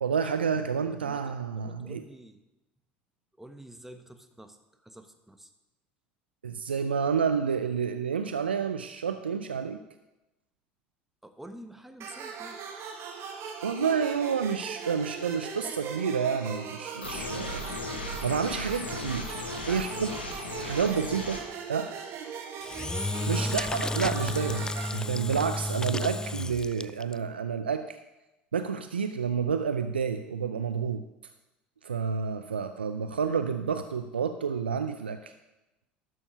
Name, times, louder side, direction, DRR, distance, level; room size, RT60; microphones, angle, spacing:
voice 1, 0.0-2.0 6.4-9.8 13.6-17.7 18.2-20.1 20.6-21.4 21.7-21.9 23.3-28.0 28.5-31.1 31.8-35.3, right 6 dB, 90° right, 8 dB, 0.4 m, -29 dB
voice 2, 1.0-2.4 3.4-5.5 11.2-12.6 19.7-20.2 20.8-20.9 23.3-23.6, right 1 dB, 5° right, 7 dB, 1.3 m, -48 dB
sound 1, 12.0-25.0, right 6 dB, 50° right, 1.7 m, -40 dB
sound 2, 17.0-21.4, left 2 dB, 90° left, 1.4 m, -37 dB
Engine / Drill, 22.6-27.1, left 2 dB, 15° left, 0.4 m, -32 dB
12.0 x 7.0 x 5.4 m, 1.0 s
hypercardioid pair, 70°, 5 cm